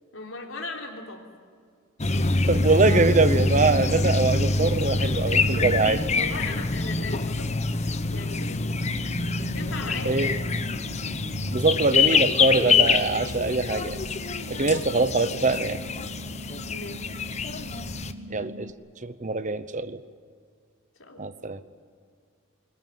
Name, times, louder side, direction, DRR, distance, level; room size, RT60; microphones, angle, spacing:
voice 1, 0.1-1.2 5.6-7.5 8.1-8.6 9.5-10.5 16.7-17.1 21.0-21.3, left 3 dB, 70° left, 2 dB, 3.6 m, -37 dB
sound 1, 2.0-18.1, left 3 dB, 35° left, 1.0 m, -25 dB
voice 2, 2.5-6.0 10.0-10.3 11.5-14.0 14.5-15.8 18.3-18.7 19.0-20.0 21.2-21.6, right 3 dB, 35° right, 13 dB, 0.9 m, -23 dB
sound 2, 8.7-18.7, equal, 65° right, 1.1 m, -41 dB
22.0 x 20.0 x 9.4 m, 2.2 s
head